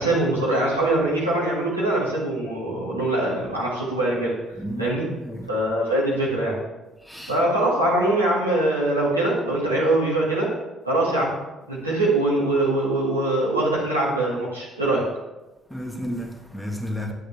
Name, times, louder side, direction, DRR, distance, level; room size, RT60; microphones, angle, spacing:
voice 1, 0.0-4.3 4.8-5.0 5.5-6.6 7.3-10.5 10.8-11.3 11.7-15.1, right 1 dB, 90° right, -7 dB, 2.1 m, -22 dB
voice 2, 4.6-5.5 7.0-7.4 15.7-17.1, equal, ahead, 3 dB, 1.5 m, -32 dB
10.0 x 8.5 x 3.4 m, 1.1 s
figure-of-eight pair, 45°, 0 cm